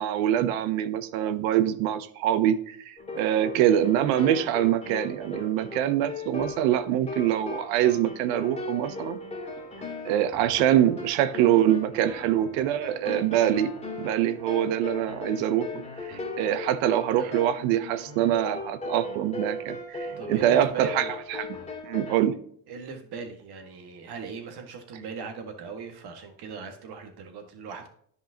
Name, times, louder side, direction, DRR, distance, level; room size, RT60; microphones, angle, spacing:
voice 1, 0.0-9.2 10.0-13.7 14.0-15.8 16.1-21.5 21.8-22.3, right 11 dB, 90° right, 0.8 m, -24 dB
sound 1, 3.0-22.2, left 3 dB, 15° left, 2.1 m, -38 dB
voice 2, 20.2-21.1 22.7-27.9, right 5 dB, 55° right, 1.7 m, -39 dB
10.5 x 5.4 x 2.8 m
cardioid pair, 115°, 46 cm